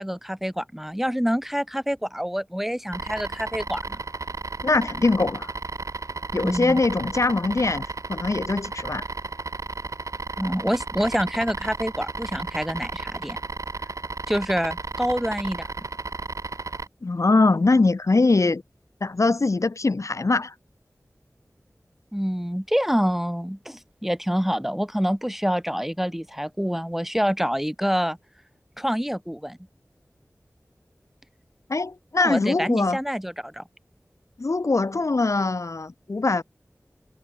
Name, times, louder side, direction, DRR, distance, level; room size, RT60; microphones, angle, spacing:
voice 1, 0.0-4.0 6.3-6.8 10.4-13.4 14.3-15.7 22.1-28.2 28.8-29.6 32.2-33.6, equal, 5° right, 2.2 m, -26 dB
sound 1, 2.9-16.9, right 3 dB, 80° right, 2.7 m, -34 dB
voice 2, 4.6-5.5 6.3-9.0 17.0-18.6 19.0-20.5 31.7-33.0 34.4-36.4, left 3 dB, 70° left, 1.6 m, -22 dB
wide cardioid pair, 60°, 5 cm